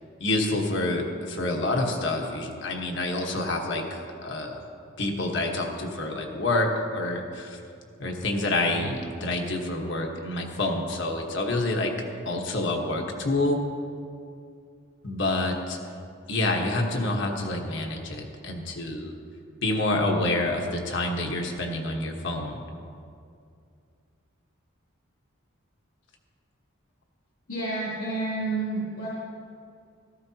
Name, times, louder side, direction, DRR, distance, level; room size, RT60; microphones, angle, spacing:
voice 1, 0.2-4.6 5.0-7.6 8.0-11.9 12.2-13.6 15.0-15.8 16.3-19.1 19.6-22.6, left 2 dB, 60° left, 1 dB, 1.3 m, -27 dB
voice 2, 27.5-29.1, right 2 dB, 85° left, -8 dB, 2.9 m, -29 dB
14.0 x 14.0 x 2.9 m, 2.4 s
head